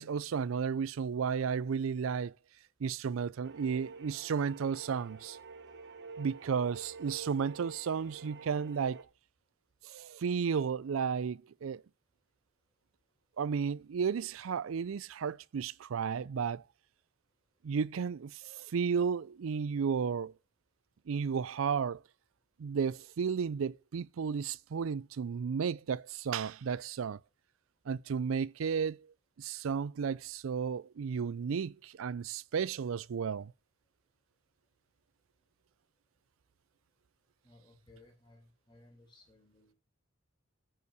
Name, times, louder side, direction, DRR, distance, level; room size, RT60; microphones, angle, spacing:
voice 1, 0.0-2.4 2.8-5.4 6.2-9.1 9.8-11.8 13.4-16.6 17.6-20.3 21.1-22.0 22.6-27.2 27.9-29.1 29.4-33.5, right 6 dB, 85° right, 0.4 m, -33 dB
sound 1, 3.4-9.0, right 4 dB, 60° right, 1.1 m, -48 dB
voice 2, 37.4-39.7, left 2 dB, 25° left, 4.1 m, -60 dB
9.1 x 5.5 x 6.6 m
head